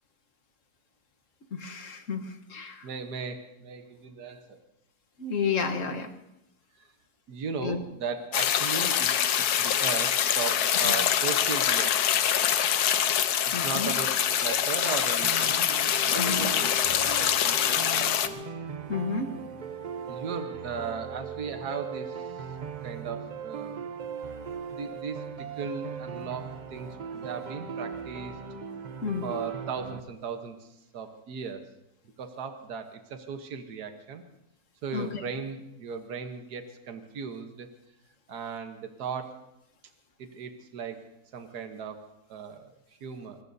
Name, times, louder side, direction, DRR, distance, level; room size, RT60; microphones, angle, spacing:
voice 1, 1.5-2.9 5.2-6.1 7.6-7.8 10.8-10.9 13.5-13.9 16.1-16.5 18.9-19.3 29.0-29.3 34.9-35.2, left 5 dB, 55° left, 5 dB, 1.5 m, -31 dB
voice 2, 2.8-4.6 6.8-6.9 7.3-9.3 9.6-12.3 13.5-15.7 16.1-18.4 20.1-22.5 22.8-23.8 24.7-28.4 29.2-31.7 32.2-34.2 34.8-37.7 38.3-39.4 40.2-41.0 41.3-42.0 42.3-42.7 43.0-43.4, right 5 dB, 75° right, 6 dB, 1.7 m, -37 dB
sound 1, 8.3-18.3, left 9 dB, 75° left, 1.3 m, -25 dB
sound 2, 15.2-30.0, right 6 dB, 45° right, 0.6 m, -39 dB
25.0 x 20.0 x 2.7 m, 0.88 s
omnidirectional pair, 1.7 m